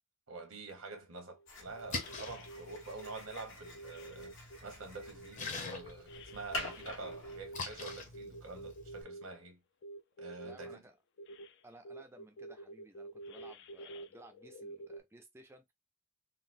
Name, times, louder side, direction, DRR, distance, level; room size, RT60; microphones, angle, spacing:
voice 1, 0.3-9.6 10.2-10.8, right 3 dB, 90° right, 1.2 m, -47 dB
sound 1, 1.3-1.5 1.7-3.1 3.6-4.6 4.9-9.3 9.8-10.8 11.2-11.5 11.8-15.0, right 2 dB, 55° left, 0.4 m, -49 dB
sound 2, 1.5-7.8, left 2 dB, 75° left, 1.2 m, -47 dB
Splash splatter, 1.7-9.0, left 3 dB, 35° left, 0.8 m, -46 dB
voice 2, 10.4-11.0 11.6-15.7, right 1 dB, 10° right, 0.4 m, -57 dB
3.8 x 2.0 x 2.5 m
head